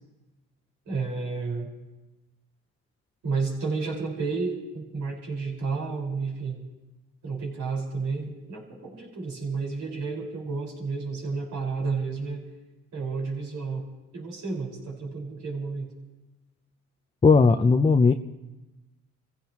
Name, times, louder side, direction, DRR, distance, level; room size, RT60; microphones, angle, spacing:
voice 1, 0.8-1.7 3.2-6.6 7.2-12.4 12.9-13.9 14.1-15.9, right 4 dB, 75° right, -1 dB, 5.1 m, -31 dB
voice 2, 17.2-18.1, left 4 dB, 20° left, 6 dB, 0.6 m, -17 dB
27.5 x 16.0 x 3.0 m, 1.1 s
cardioid pair, 90°, 30 cm